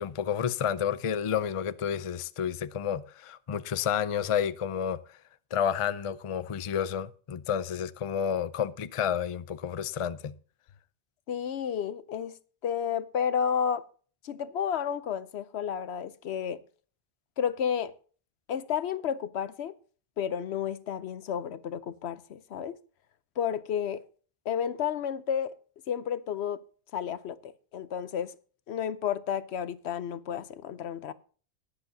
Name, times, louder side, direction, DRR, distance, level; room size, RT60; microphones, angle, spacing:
voice 1, 0.0-5.0 5.5-10.3, left 8 dB, 40° left, 0.5 m, -30 dB
voice 2, 11.3-12.3 12.6-13.8 14.2-16.6 17.4-17.9 18.5-19.7 20.2-22.7 23.4-24.0 24.5-25.5 25.9-26.6 26.9-28.3 28.7-31.1, left 8 dB, 75° left, 1.0 m, -31 dB
21.5 x 7.9 x 2.7 m
omnidirectional pair, 1.1 m